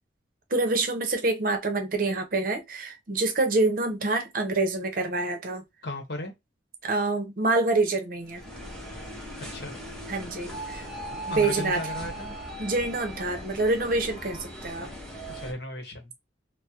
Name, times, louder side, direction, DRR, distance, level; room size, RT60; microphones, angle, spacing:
voice 1, 0.5-5.6 6.8-8.4 10.1-10.8 11.1-11.8 12.6-14.9, right 2 dB, 45° right, 0.7 m, -26 dB
voice 2, 5.8-6.3 9.5-9.8 11.3-12.4 15.3-16.1, left 1 dB, 55° left, 0.9 m, -35 dB
sound 1, 8.3-15.5, right 1 dB, 5° left, 0.6 m, -38 dB
3.6 x 2.0 x 2.8 m
head